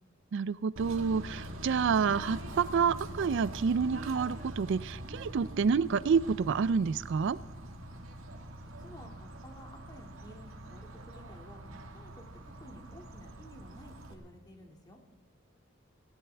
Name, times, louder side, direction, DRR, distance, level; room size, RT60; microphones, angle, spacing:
voice 1, 0.3-7.4, right 6 dB, 65° right, 17 dB, 0.4 m, -28 dB
Bird / Train, 0.8-14.1, right 1 dB, 85° right, 1.7 m, -44 dB
voice 2, 8.8-11.6 11.9-12.2 12.6-15.0, equal, 20° left, 2 dB, 2.1 m, -52 dB
18.0 x 18.0 x 3.4 m, 1.4 s
head